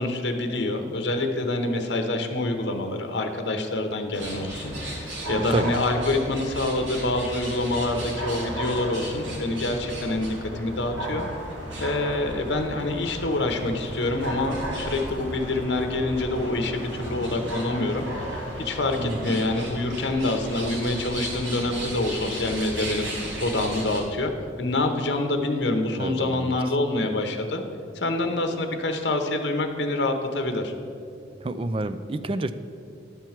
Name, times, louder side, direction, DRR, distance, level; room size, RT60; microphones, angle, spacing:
voice 1, 0.0-11.3 11.8-23.1 23.4-24.3 24.6-27.6 27.9-30.7, left 2 dB, 65° left, 5 dB, 0.9 m, -26 dB
sound 1, 4.1-24.0, right 1 dB, 85° right, 2.0 m, -34 dB
voice 2, 5.4-5.8 19.0-19.5 25.9-26.6 27.0-27.2 31.4-32.5, right 2 dB, 30° right, 12 dB, 0.3 m, -29 dB
11.0 x 4.6 x 7.3 m, 2.5 s
head